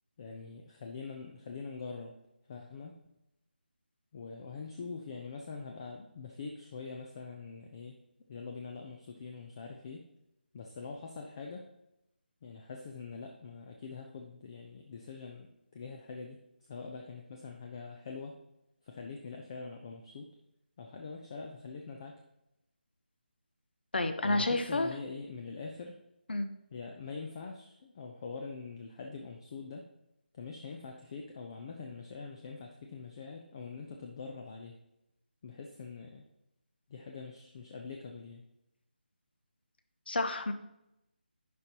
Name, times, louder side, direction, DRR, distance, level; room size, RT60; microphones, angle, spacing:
voice 1, 0.2-2.2 2.5-3.1 4.1-8.0 8.3-10.0 10.5-11.7 12.4-16.4 16.7-18.4 18.8-20.3 20.8-22.2 24.2-26.0 26.7-29.9 30.3-34.8 35.4-36.2 36.9-38.4, left 4 dB, 30° left, 2 dB, 0.6 m, -44 dB
voice 2, 23.9-24.9 26.3-26.5 40.1-40.5, left 2 dB, 65° left, 9 dB, 0.9 m, -30 dB
10.5 x 5.3 x 2.9 m, 0.86 s
figure-of-eight pair, 165°, 6 cm